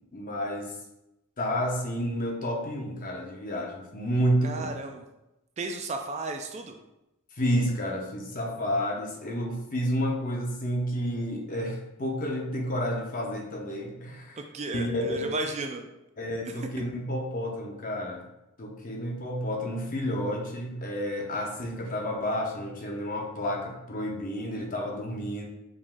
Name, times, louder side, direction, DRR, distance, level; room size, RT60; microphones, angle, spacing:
voice 1, 0.1-0.7 1.4-4.7 7.4-14.4 14.7-15.3 16.2-18.2 18.6-25.4, equal, 40° left, 0 dB, 0.7 m, -30 dB
voice 2, 4.4-5.0 5.6-6.8 14.4-15.8 16.5-16.6, right 3 dB, 30° right, 5 dB, 0.3 m, -34 dB
5.0 x 3.6 x 2.5 m, 0.92 s
head